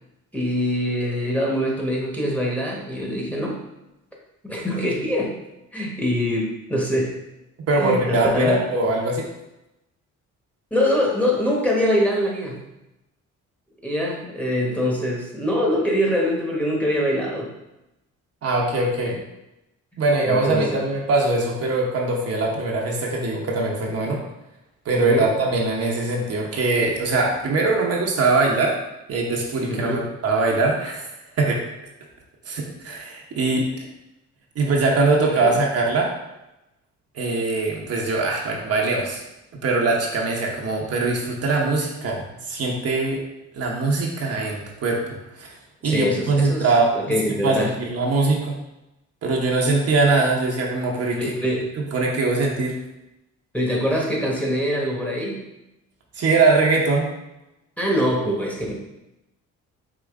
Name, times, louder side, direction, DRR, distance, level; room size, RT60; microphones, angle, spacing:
voice 1, 0.3-3.6 4.4-5.4 5.7-7.2 7.8-8.6 10.7-12.6 13.8-17.5 20.2-20.9 25.0-25.3 29.7-30.1 35.3-35.6 45.8-47.7 51.1-51.7 53.5-55.4 57.8-58.7, equal, 5° left, -3 dB, 1.2 m, -24 dB
voice 2, 7.7-9.3 18.4-19.2 20.0-24.2 24.8-28.7 29.1-31.1 31.4-31.6 32.4-33.7 34.5-36.1 37.1-39.2 39.6-43.3 43.5-45.5 45.8-48.6 49.2-51.2 51.9-52.7 56.1-57.1, right 3 dB, 55° right, -1 dB, 1.0 m, -22 dB
4.9 x 3.0 x 3.6 m, 0.92 s
cardioid pair, 90°, 30 cm